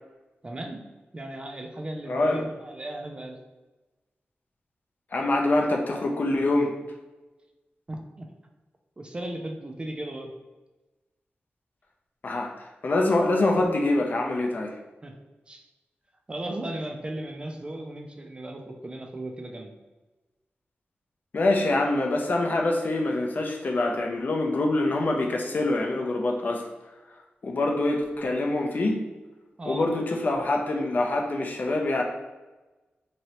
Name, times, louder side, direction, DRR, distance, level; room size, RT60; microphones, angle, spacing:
voice 1, 0.4-0.8 1.1-3.4 7.9-8.3 9.0-10.3 15.0-15.2 15.5-15.6 16.3-19.7 29.6-29.9, right 1 dB, 25° right, 3 dB, 0.4 m, -36 dB
voice 2, 2.1-2.4 5.1-6.7 12.2-14.7 21.3-26.7 27.4-29.0 29.7-32.0, left 2 dB, 50° left, 1 dB, 0.4 m, -25 dB
3.0 x 2.7 x 2.8 m, 1.1 s
wide cardioid pair, 125°, 4 cm